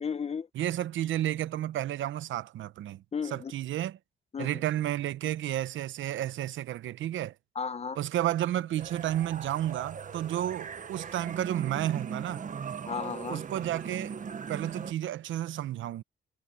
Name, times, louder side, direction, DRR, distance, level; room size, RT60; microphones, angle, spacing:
voice 1, 0.0-0.5 3.1-3.5 4.3-4.6 7.5-8.0 12.9-13.4, left 6 dB, 30° left, 1.0 m, -34 dB
voice 2, 0.5-3.0 3.3-4.0 4.4-7.3 8.0-12.4 13.3-14.1 14.5-16.0, right 12 dB, 75° right, 0.9 m, -31 dB
sound 1, 8.8-14.9, right 6 dB, 40° right, 1.2 m, -39 dB
cardioid pair, 90°, 20 cm